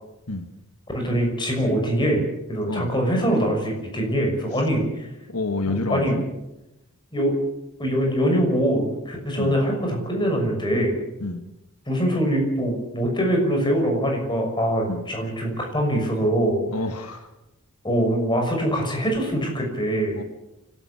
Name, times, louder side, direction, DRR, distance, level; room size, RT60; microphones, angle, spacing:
voice 1, 0.9-5.1 5.7-6.2 7.1-7.3 7.8-11.0 11.9-16.6 17.8-20.2, equal, 20° left, 2 dB, 6.2 m, -23 dB
voice 2, 5.3-6.2 9.4-9.6 11.2-11.4 14.9-15.0 16.7-17.3 20.1-20.2, left 2 dB, 90° left, 7 dB, 1.9 m, -28 dB
29.5 x 12.5 x 8.6 m, 0.95 s
head